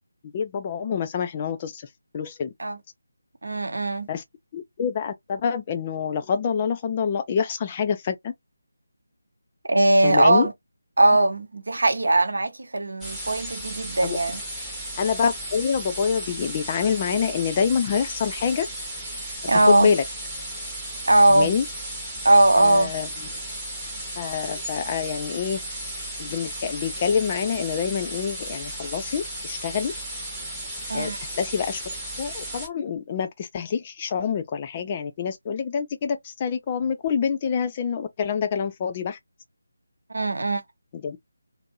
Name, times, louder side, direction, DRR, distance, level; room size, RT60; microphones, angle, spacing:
voice 1, 0.2-1.9 2.1-2.5 4.1-4.2 4.5-8.3 10.0-10.5 14.0-14.2 15.0-18.7 19.5-20.0 21.3-21.7 22.5-23.3 24.2-25.6 26.2-29.9 30.9-31.8 32.2-39.2 40.9-41.2, left 6 dB, 20° left, 0.3 m, -26 dB
voice 2, 3.4-4.1 9.7-10.5 11.0-14.4 19.5-19.9 21.1-21.5 22.2-22.9 30.9-31.2 40.1-40.6, right 2 dB, 55° right, 0.6 m, -19 dB
sound 1, 13.0-32.7, right 1 dB, ahead, 0.7 m, -35 dB
2.6 x 2.5 x 2.7 m
figure-of-eight pair, 155°, 0 cm